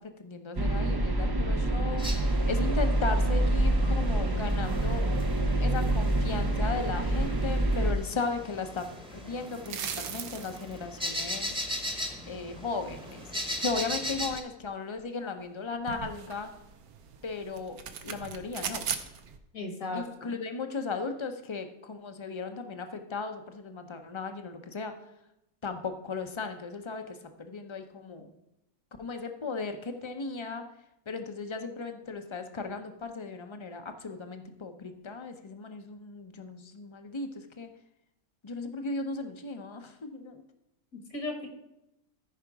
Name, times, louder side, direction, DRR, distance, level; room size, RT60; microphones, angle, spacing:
voice 1, 0.2-5.1 5.6-8.8 9.1-11.5 12.3-13.3 13.6-16.5 17.2-18.8 19.9-24.9 25.6-28.3 29.0-30.6 31.1-37.7 38.4-40.4, left 4 dB, 30° left, 7 dB, 0.6 m, -36 dB
sound 1, 0.6-7.9, right 1 dB, 30° right, 0.4 m, -26 dB
sound 2, 2.0-14.4, equal, 5° right, 1.0 m, -39 dB
sound 3, 9.5-10.8 11.1-11.2 12.9-13.4 13.6-13.7 14.3-14.4 14.6-14.7 15.4-15.5 15.7-19.4, right 7 dB, 85° right, 1.3 m, -39 dB
voice 2, 19.5-20.4 40.9-41.5, left 2 dB, 70° left, 4 dB, 2.0 m, -36 dB
14.5 x 5.1 x 4.7 m, 0.86 s
omnidirectional pair, 1.5 m